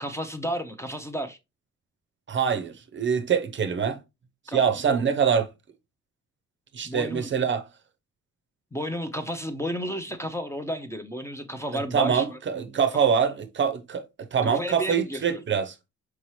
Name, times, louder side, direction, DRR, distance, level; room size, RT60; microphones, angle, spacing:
voice 1, 0.0-1.4 4.5-5.0 6.8-7.3 8.7-12.4 14.5-15.4, equal, 10° left, 0.5 m, -32 dB
voice 2, 2.3-4.0 4.5-5.5 6.7-7.6 11.7-14.0 14.3-15.7, right 7 dB, 40° right, 0.6 m, -24 dB
4.6 x 2.9 x 3.0 m
cardioid pair, 90°, 30 cm